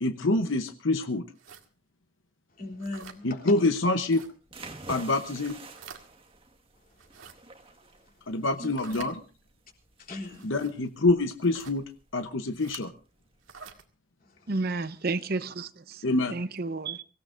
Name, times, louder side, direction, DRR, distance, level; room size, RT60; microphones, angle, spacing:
voice 1, 0.0-1.3 3.2-4.2 4.9-5.6 8.3-9.1 10.4-11.8 12.1-12.9 16.0-16.4, left 2 dB, 65° left, 0.9 m, -26 dB
sound 1, 1.4-1.7 2.8-3.2 4.1-4.3 5.2-6.0 6.9-7.3 8.6-9.1 10.3-10.7 11.4-11.8 12.6-12.8 13.4-13.8, right 6 dB, 70° right, 2.0 m, -47 dB
voice 2, 2.6-3.6 8.6-9.1 10.0-10.5 14.2-14.3, left 2 dB, 45° left, 3.5 m, -39 dB
sound 2, 4.4-13.7, right 3 dB, 25° right, 1.6 m, -48 dB
voice 3, 14.5-17.0, right 3 dB, 45° right, 0.7 m, -32 dB
24.5 x 16.5 x 2.6 m
head